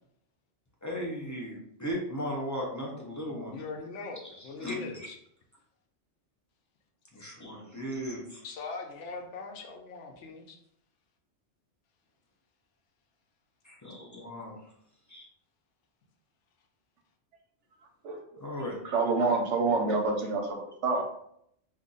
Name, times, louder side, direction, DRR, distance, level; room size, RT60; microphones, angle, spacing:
voice 1, 0.8-3.6 4.6-4.7 7.1-8.4 13.6-14.6 15.1-15.2 18.4-18.8, equal, 25° left, -3 dB, 0.4 m, -36 dB
voice 2, 3.5-5.1 7.2-7.3 8.4-10.6, left 4 dB, 85° left, 4 dB, 1.0 m, -40 dB
voice 3, 18.9-20.6 20.8-21.0, right 3 dB, 80° right, 3 dB, 1.0 m, -26 dB
2.7 x 2.5 x 3.8 m, 0.72 s
omnidirectional pair, 1.2 m